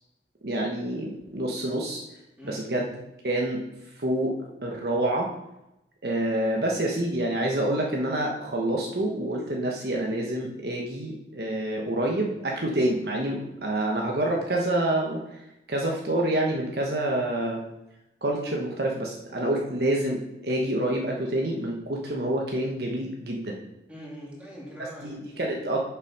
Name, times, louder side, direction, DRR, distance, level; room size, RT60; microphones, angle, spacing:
voice 1, 0.4-2.0 2.5-2.9 3.2-5.3 6.0-15.4 15.7-17.6 18.2-23.6 25.0-25.8, right 1 dB, 60° right, -1 dB, 1.3 m, -27 dB
voice 2, 23.9-25.7, equal, 5° right, -5 dB, 2.9 m, -43 dB
7.4 x 7.1 x 5.5 m, 0.91 s
head